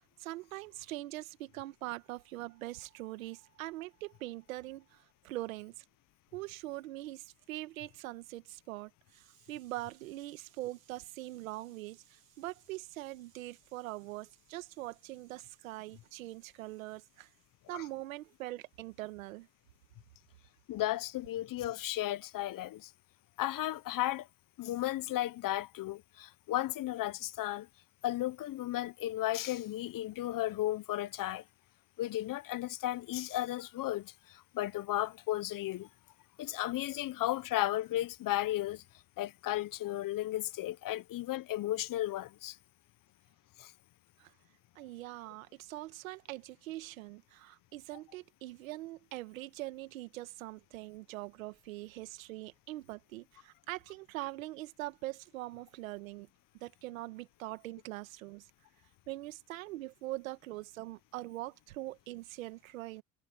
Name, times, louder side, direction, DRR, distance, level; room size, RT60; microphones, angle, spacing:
voice 1, 0.0-5.8 6.3-17.3 17.7-19.5 44.2-44.3 44.7-56.3 56.6-58.5 59.1-63.0, right 17 dB, 90° right, 1.7 m, -43 dB
voice 2, 20.7-22.9 23.4-24.3 24.6-27.7 28.0-31.4 32.0-35.9 36.4-38.8 39.2-42.6 43.6-43.7, left 14 dB, 55° left, 1.0 m, -34 dB
hypercardioid pair, 65°, 39 cm